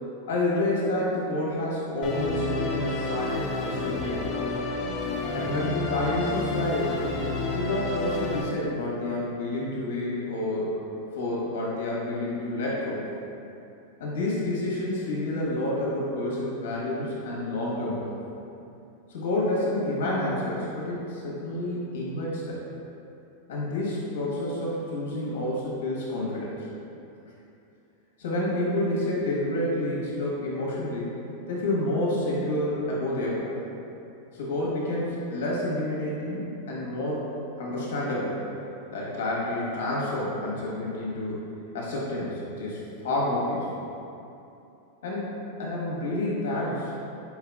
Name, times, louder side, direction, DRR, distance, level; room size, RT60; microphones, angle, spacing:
voice 1, 0.3-4.4 5.3-7.0 7.5-10.8 11.1-13.0 14.0-18.2 19.1-22.6 23.5-26.5 28.2-31.1 31.5-33.5 34.3-37.2 37.6-38.4 38.9-41.4 41.7-43.6 45.0-46.9, left 1 dB, 75° left, -5 dB, 1.3 m, -29 dB
Musical instrument, 2.0-8.4, left 3 dB, 25° left, 0.3 m, -30 dB
4.7 x 4.5 x 2.3 m, 2.8 s
supercardioid pair, 180°, 0 cm